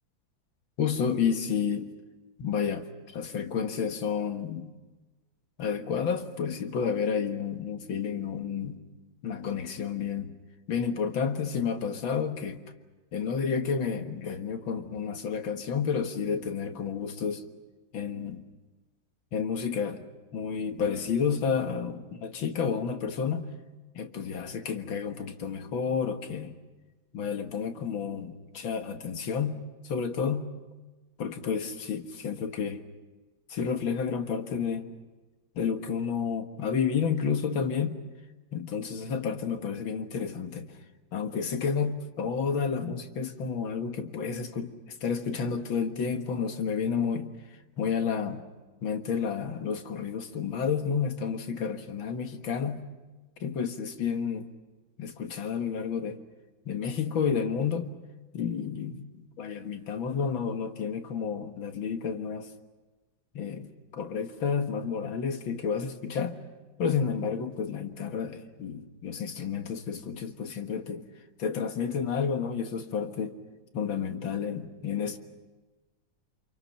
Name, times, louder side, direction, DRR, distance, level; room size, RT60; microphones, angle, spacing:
voice 1, 0.8-1.9 2.4-2.9 3.1-4.7 5.6-8.8 9.2-10.3 10.7-12.6 13.1-17.4 17.9-18.5 19.3-23.5 23.9-26.6 27.1-30.5 31.2-32.8 33.5-34.9 35.6-38.0 38.5-40.7 41.1-47.3 47.8-48.4 48.8-52.8 53.4-54.5 55.0-56.2 56.7-57.9 58.3-62.5 63.3-66.4 66.8-71.0 71.4-73.4 73.7-75.2, left 6 dB, 85° left, 6 dB, 2.4 m, -30 dB
28.5 x 27.5 x 5.8 m, 1.2 s
omnidirectional pair, 2.1 m